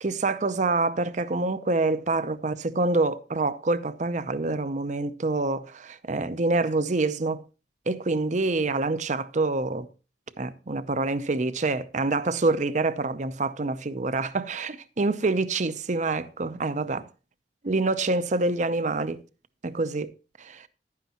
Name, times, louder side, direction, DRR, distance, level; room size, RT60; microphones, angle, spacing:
voice 1, 0.0-7.4 7.9-9.9 10.4-17.1 17.6-19.2 19.6-20.1 20.4-20.7, right 3 dB, 40° right, 0.6 m, -26 dB
12.0 x 9.5 x 2.9 m
head